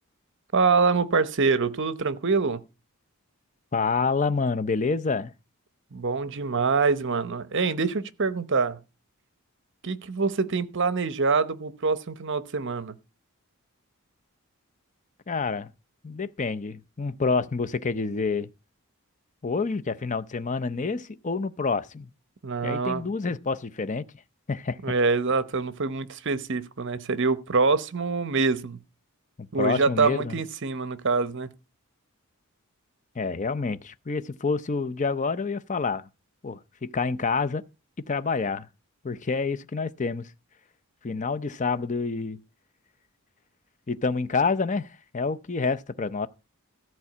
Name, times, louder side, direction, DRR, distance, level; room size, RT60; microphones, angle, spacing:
voice 1, 0.5-2.6 5.9-8.8 9.8-13.0 22.4-23.0 24.8-28.8 29.5-31.5, right 4 dB, 55° right, 0.9 m, -25 dB
voice 2, 3.7-5.3 15.3-15.7 16.0-18.5 19.4-22.1 22.6-24.0 24.5-24.9 29.4-30.3 33.2-36.1 36.4-37.6 38.1-38.7 39.0-40.3 41.0-42.4 43.9-44.9 45.1-46.3, left 4 dB, 35° left, 0.6 m, -28 dB
14.0 x 4.6 x 8.4 m
head